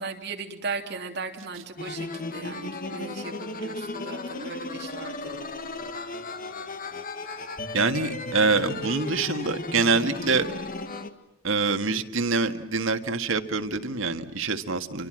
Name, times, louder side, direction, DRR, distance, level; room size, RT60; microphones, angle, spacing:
voice 1, 0.0-5.4, right 4 dB, 55° right, 3 dB, 3.0 m, -37 dB
sound 1, 1.8-11.1, left 2 dB, 45° left, 1.7 m, -35 dB
voice 2, 7.7-10.5 11.4-15.1, right 4 dB, 80° right, 7 dB, 1.8 m, -25 dB
28.0 x 24.5 x 7.7 m, 0.73 s
head